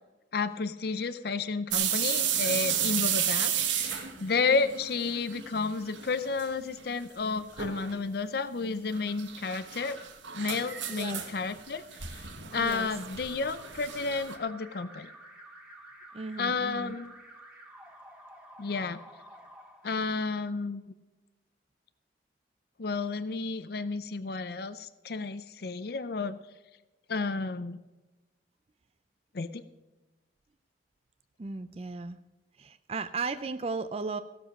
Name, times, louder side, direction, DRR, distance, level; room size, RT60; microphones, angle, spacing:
voice 1, 0.3-10.0 10.3-15.1 16.4-17.1 18.6-19.0 19.8-20.8 22.8-26.4 27.1-27.8 29.3-29.6, left 4 dB, 55° left, 13 dB, 0.5 m, -32 dB
sound 1, 1.7-5.5 5.8-6.5 6.8-6.9 7.6-7.9 8.9-14.4, right 9 dB, 85° right, 1.4 m, -32 dB
voice 2, 10.9-11.2 12.5-12.9 16.1-17.0 31.4-32.2 32.6-34.2, right 4 dB, 30° right, 11 dB, 0.4 m, -36 dB
Alarm, 12.6-20.5, right 1 dB, 5° right, 1.9 m, -51 dB
16.5 x 7.1 x 6.1 m, 1.1 s
head